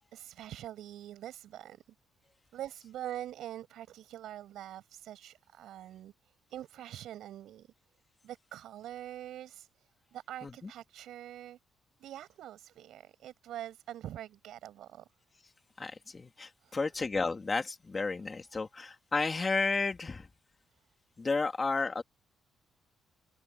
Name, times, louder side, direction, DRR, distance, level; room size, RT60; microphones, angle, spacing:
voice 1, 0.1-1.8 2.5-7.7 8.2-11.6 12.0-15.1 16.6-16.8, right 12 dB, 80° right, 7.5 m, -44 dB
voice 2, 15.8-20.3 21.2-22.0, left 3 dB, 30° left, 2.1 m, -32 dB
cardioid pair, 90°, 0 cm